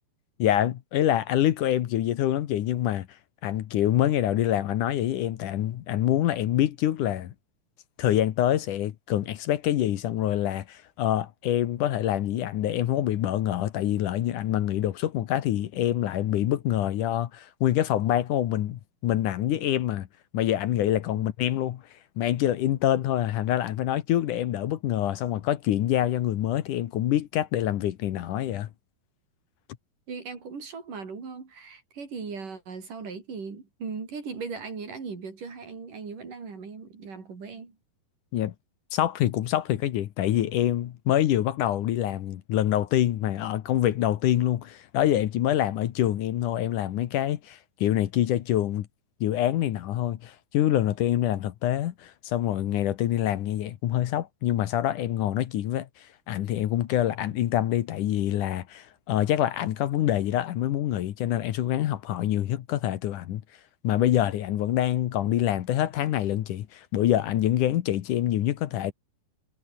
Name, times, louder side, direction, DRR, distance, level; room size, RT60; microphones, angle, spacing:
voice 1, 0.4-3.1 3.4-7.3 8.0-20.1 20.3-21.8 22.2-28.7 38.3-38.5 38.9-48.9 49.2-63.4 63.8-68.9, left 12 dB, 65° left, 2.4 m, -26 dB
voice 2, 30.1-37.8, right 5 dB, 60° right, 6.5 m, -38 dB
omnidirectional pair, 4.3 m